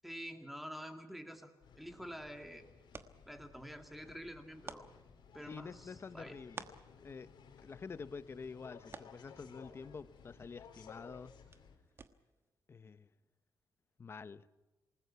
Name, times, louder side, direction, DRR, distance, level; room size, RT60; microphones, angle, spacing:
voice 1, 0.0-2.7 3.3-4.9 5.3-6.4, equal, ahead, 5 dB, 2.2 m, -48 dB
sound 1, 1.6-11.8, left 6 dB, 80° left, 4.1 m, -58 dB
sound 2, 1.8-12.5, right 4 dB, 30° right, 1.2 m, -56 dB
voice 2, 5.5-6.7 7.0-7.3 7.6-11.3 12.7-13.1 14.0-14.5, left 5 dB, 30° left, 15 dB, 0.8 m, -48 dB
27.5 x 20.0 x 5.8 m, 1.2 s
wide cardioid pair, 165°, 8 cm